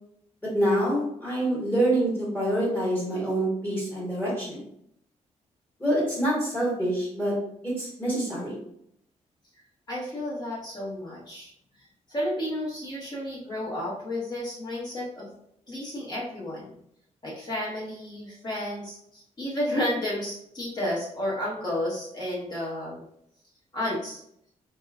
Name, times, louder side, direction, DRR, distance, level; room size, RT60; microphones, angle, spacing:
voice 1, 0.5-4.6 5.8-7.4 7.6-8.6, right 1 dB, 15° left, -7 dB, 1.4 m, -26 dB
voice 2, 9.9-11.5 12.1-15.3 15.7-16.8 17.2-23.0 23.7-24.2, left 1 dB, 35° left, -6 dB, 1.2 m, -32 dB
4.3 x 2.7 x 2.4 m, 0.72 s
wide cardioid pair, 180°, 13 cm